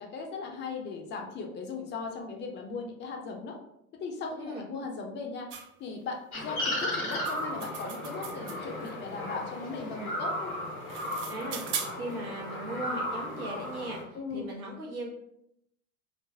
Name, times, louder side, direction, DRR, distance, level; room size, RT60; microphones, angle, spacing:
voice 1, 0.0-3.6 4.0-5.5 5.8-10.6 14.1-14.5, left 4 dB, 25° left, 2 dB, 0.4 m, -38 dB
voice 2, 4.4-4.7 11.3-11.6 11.9-15.1, right 1 dB, 90° right, -3 dB, 1.0 m, -38 dB
sound 1, 5.5-5.7 6.8-8.9 10.6-12.2, right 6 dB, 30° right, 0.4 m, -39 dB
sound 2, 6.3-14.0, left 1 dB, 90° left, 1.1 m, -35 dB
3.1 x 2.0 x 2.7 m, 0.77 s
figure-of-eight pair, 80°, 42 cm